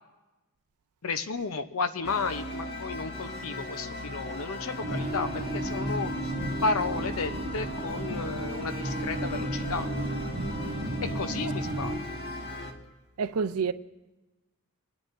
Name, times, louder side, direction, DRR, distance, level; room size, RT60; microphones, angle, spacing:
voice 1, 1.0-6.3 6.6-9.9 11.0-12.1, left 4 dB, 75° left, 0.7 m, -33 dB
sound 1, 2.0-12.7, left 1 dB, 50° left, 1.3 m, -37 dB
sound 2, 4.8-12.0, right 1 dB, 50° right, 0.9 m, -34 dB
voice 2, 13.2-13.7, right 5 dB, 90° right, 0.5 m, -27 dB
28.5 x 9.8 x 2.6 m
head